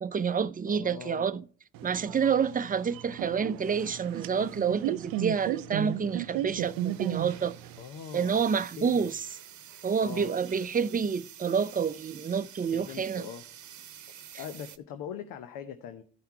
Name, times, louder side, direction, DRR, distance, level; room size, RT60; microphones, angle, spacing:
voice 1, 0.0-1.4 1.8-7.5 8.1-9.3 9.8-13.3, right 6 dB, 25° right, 0.6 m, -28 dB
voice 2, 0.6-1.3 7.8-9.1 10.0-10.3 12.7-13.4 14.1-16.0, left 8 dB, 75° left, 0.9 m, -42 dB
sound 1, 1.7-7.8, right 13 dB, 80° right, 0.5 m, -35 dB
sound 2, 6.6-14.8, right 10 dB, 60° right, 0.9 m, -49 dB
13.5 x 5.7 x 4.5 m
hypercardioid pair, 45°, 34 cm